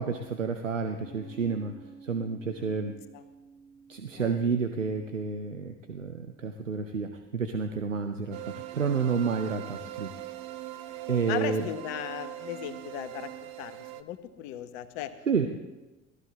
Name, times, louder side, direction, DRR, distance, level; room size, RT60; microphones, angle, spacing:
voice 1, 0.0-1.7 2.0-2.9 3.9-10.1 11.1-11.7 15.3-15.5, right 5 dB, 90° right, 6 dB, 0.6 m, -30 dB
Piano, 1.0-8.2, right 5 dB, 35° right, 4.5 m, -53 dB
voice 2, 4.2-4.5 11.3-15.1, left 12 dB, 60° left, 11 dB, 1.1 m, -37 dB
sound 1, 8.3-14.0, right 14 dB, 55° right, 0.8 m, -41 dB
18.0 x 13.5 x 3.5 m, 1.1 s
figure-of-eight pair, 60°, 37 cm